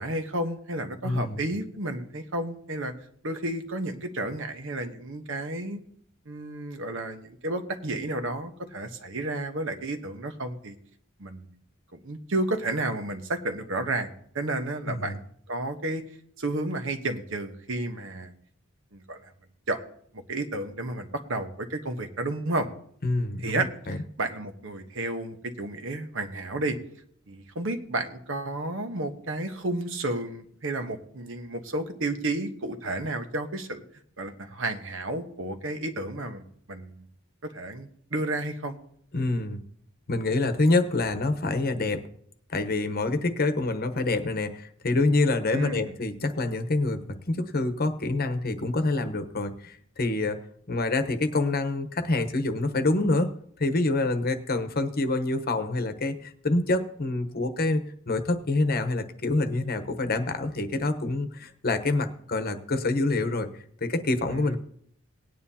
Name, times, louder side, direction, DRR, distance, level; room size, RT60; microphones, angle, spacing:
voice 1, 0.0-2.9 3.2-5.8 6.2-10.8 11.2-11.5 11.9-16.0 16.4-18.3 18.9-19.3 19.7-19.8 20.1-22.7 23.4-26.8 27.3-33.8 34.2-37.0 37.5-38.8 45.5-45.9 64.3-64.6, right 2 dB, 65° right, 7 dB, 1.1 m, -32 dB
voice 2, 1.0-1.4 14.9-15.2 23.0-24.0 39.1-39.6 40.1-42.1 42.5-50.4 50.7-63.5 63.8-64.6, left 2 dB, 50° left, 9 dB, 1.0 m, -26 dB
18.5 x 9.4 x 2.8 m, 0.65 s
head